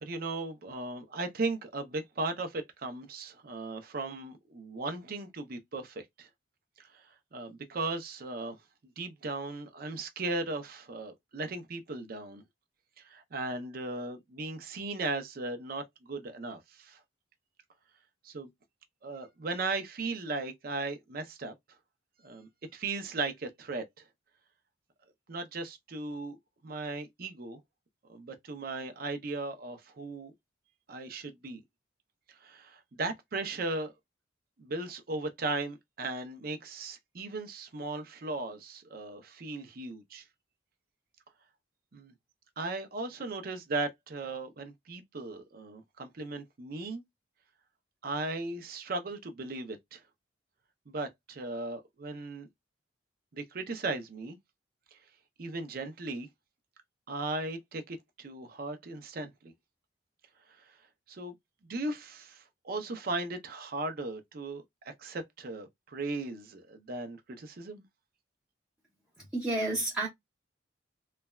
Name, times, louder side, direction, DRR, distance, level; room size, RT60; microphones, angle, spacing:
voice 1, 0.0-6.3 6.8-7.1 7.3-8.6 9.0-12.4 13.0-17.0 18.2-18.5 19.0-21.5 22.2-24.0 25.3-26.4 26.6-27.6 28.1-30.3 30.9-31.6 32.3-33.9 34.6-40.2 41.9-42.1 42.6-47.0 48.0-50.0 50.9-52.5 53.3-54.4 54.9-55.0 55.4-56.3 57.1-59.5 60.6-60.8 61.1-61.3 61.7-67.8, right 3 dB, 50° right, 0.5 m, -37 dB
voice 2, 69.3-70.1, right 2 dB, 5° right, 0.7 m, -30 dB
3.2 x 2.1 x 2.3 m
head